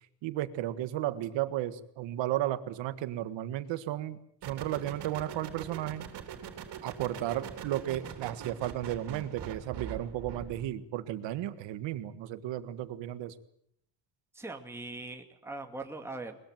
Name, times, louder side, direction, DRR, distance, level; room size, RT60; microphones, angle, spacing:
voice 1, 0.2-4.2 4.4-6.0 6.8-13.3, right 13 dB, 80° right, 12 dB, 1.7 m, -34 dB
sound 1, 4.4-10.8, right 8 dB, 65° right, 3.6 m, -43 dB
voice 2, 14.3-16.4, right 2 dB, 5° right, 4 dB, 2.2 m, -41 dB
21.5 x 21.0 x 9.1 m, 0.72 s
cardioid pair, 120°, 43 cm